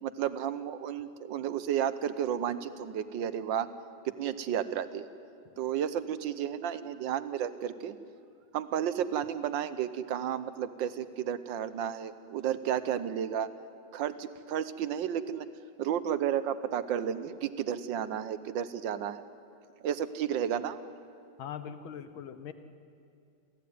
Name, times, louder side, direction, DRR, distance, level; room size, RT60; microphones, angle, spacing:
voice 1, 0.0-3.7 4.0-5.1 5.6-8.0 8.5-13.5 13.9-15.5 15.8-19.2 19.8-20.8, right 9 dB, 70° right, 13 dB, 1.6 m, -32 dB
voice 2, 21.4-22.5, left 8 dB, 80° left, 10 dB, 1.8 m, -41 dB
28.0 x 14.5 x 9.4 m, 2.5 s
omnidirectional pair, 2.2 m